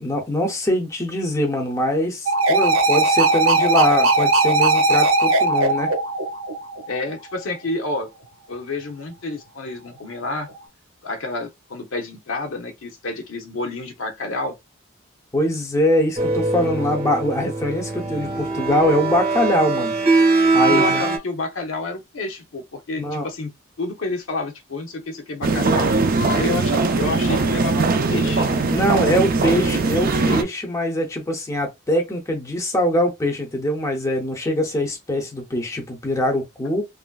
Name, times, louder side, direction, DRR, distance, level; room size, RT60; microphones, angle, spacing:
voice 1, 0.0-5.9 15.3-20.0 20.5-21.0 23.0-23.3 28.7-36.8, equal, 15° left, 0.5 m, -22 dB
sound 1, 2.3-7.2, right 2 dB, 80° right, 0.7 m, -18 dB
voice 2, 6.9-8.1 8.5-10.5 11.0-14.6 20.7-23.5 23.8-25.9 26.3-28.5, left 2 dB, 75° left, 0.7 m, -29 dB
sound 2, 16.2-21.2, right 3 dB, 25° right, 0.7 m, -21 dB
sound 3, 25.4-30.4, right 3 dB, 45° right, 0.4 m, -20 dB
3.0 x 2.5 x 2.2 m
head